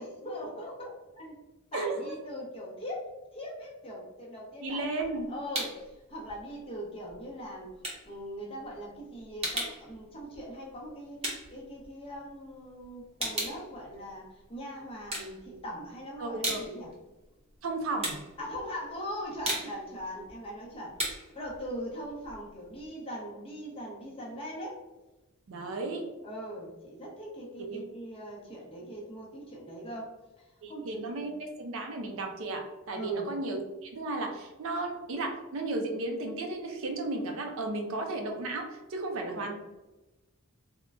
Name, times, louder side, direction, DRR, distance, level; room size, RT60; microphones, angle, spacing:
voice 1, 0.0-1.4 1.7-7.7 8.0-16.9 18.4-24.8 26.2-30.1 30.7-31.3 32.9-33.3 39.1-39.5, equal, 25° left, -3 dB, 0.6 m, -41 dB
voice 2, 1.7-2.2 4.6-5.3 16.2-16.6 17.6-18.2 25.5-26.1 27.6-27.8 30.6-39.5, right 2 dB, 60° right, 3 dB, 0.5 m, -34 dB
sound 1, 4.7-5.9 6.3-12.5 12.8-14.6 15.0-15.8 16.2-22.9, right 1 dB, 30° right, 0.7 m, -37 dB
3.6 x 2.1 x 2.4 m, 1.1 s
head